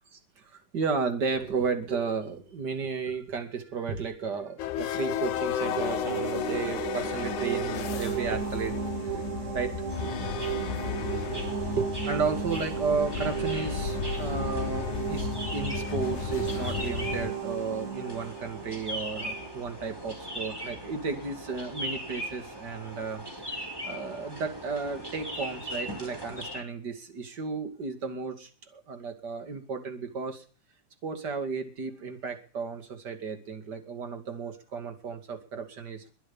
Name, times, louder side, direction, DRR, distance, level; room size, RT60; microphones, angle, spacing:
voice 1, 0.1-9.2 9.5-9.7 10.0-10.1 10.4-10.6 10.9-11.2 11.8-23.2 23.5-30.4 31.0-36.1, right 5 dB, 35° right, 7 dB, 2.8 m, -33 dB
sound 1, 4.6-17.3, left 11 dB, 75° left, 2.3 m, -34 dB
sound 2, 4.9-19.6, right 7 dB, 80° right, 3.8 m, -35 dB
sound 3, 9.9-26.6, equal, 5° right, 4.8 m, -40 dB
22.0 x 8.1 x 7.2 m, 0.40 s
omnidirectional pair, 3.5 m